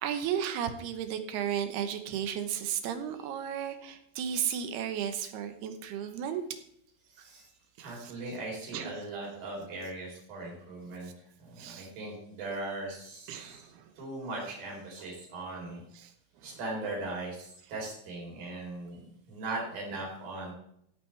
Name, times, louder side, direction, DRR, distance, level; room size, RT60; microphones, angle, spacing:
voice 1, 0.0-6.4 7.8-8.1 8.7-8.9 11.6-11.9 13.3-13.9 16.0-16.1 16.4-16.6, right 9 dB, 90° right, 8 dB, 3.1 m, -34 dB
voice 2, 7.8-11.1 11.4-13.6 14.0-15.8 16.4-19.0 19.3-20.5, right 2 dB, 65° right, -2 dB, 5.4 m, -39 dB
16.5 x 8.8 x 3.4 m, 0.72 s
omnidirectional pair, 4.5 m